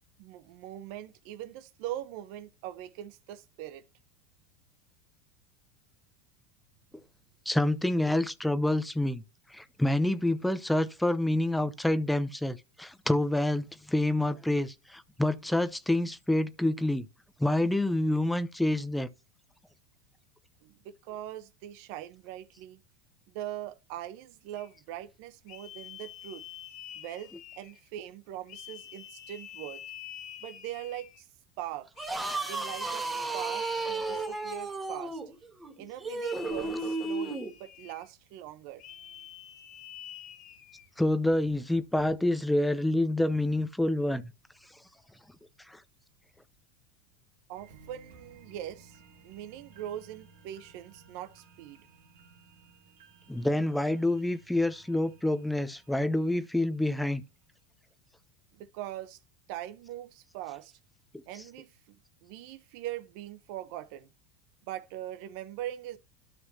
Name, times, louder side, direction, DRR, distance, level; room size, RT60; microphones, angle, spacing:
voice 1, 0.2-3.8 20.6-22.8 23.3-26.5 26.9-29.8 30.4-31.3 31.6-32.1 32.4-33.1 33.3-35.2 35.8-39.3 47.5-51.9 58.5-59.2 59.5-60.7 61.3-64.1 64.6-66.0, right 12 dB, 65° right, 0.9 m, -41 dB
voice 2, 7.5-9.2 9.5-17.1 17.4-19.1 41.0-44.2 45.7-45.8 53.3-57.2, left 1 dB, 5° left, 0.7 m, -27 dB
sound 1, 24.6-24.8 25.5-27.9 28.5-31.2 32.0-34.8 36.2-38.1 38.8-40.9, left 11 dB, 50° left, 1.3 m, -47 dB
sound 2, 31.9-37.5, right 3 dB, 15° right, 1.7 m, -33 dB
sound 3, 47.5-56.9 57.3-57.4, right 4 dB, 80° right, 2.5 m, -58 dB
12.5 x 6.0 x 2.9 m
supercardioid pair, 110°, 0 cm